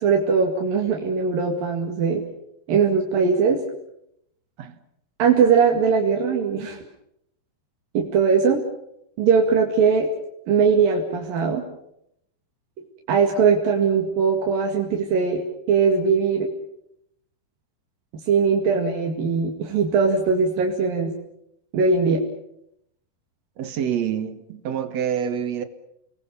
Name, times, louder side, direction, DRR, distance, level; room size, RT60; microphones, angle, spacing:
voice 1, 0.0-2.2 2.7-3.6 5.2-6.8 7.9-8.6 9.2-10.1 10.5-11.6 13.1-16.5 18.3-21.1 21.7-22.2, right 5 dB, 80° right, 4.0 m, -20 dB
voice 2, 23.6-25.6, right 8 dB, 55° right, 2.4 m, -27 dB
29.5 x 21.0 x 7.1 m
omnidirectional pair, 4.0 m